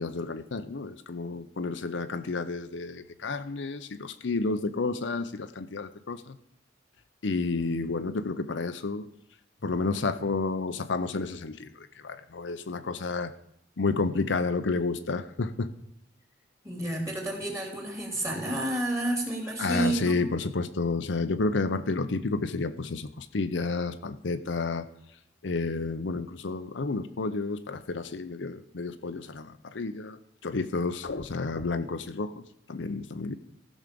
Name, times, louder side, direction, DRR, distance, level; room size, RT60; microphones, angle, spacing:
voice 1, 0.0-6.4 7.2-9.1 9.6-13.3 13.8-15.7 19.6-24.9 25.4-30.2 30.4-32.4 32.7-33.4, left 3 dB, 70° left, 10 dB, 0.7 m, -30 dB
voice 2, 16.6-20.3, right 1 dB, 15° right, 1 dB, 3.1 m, -30 dB
15.0 x 6.3 x 5.2 m, 0.76 s
head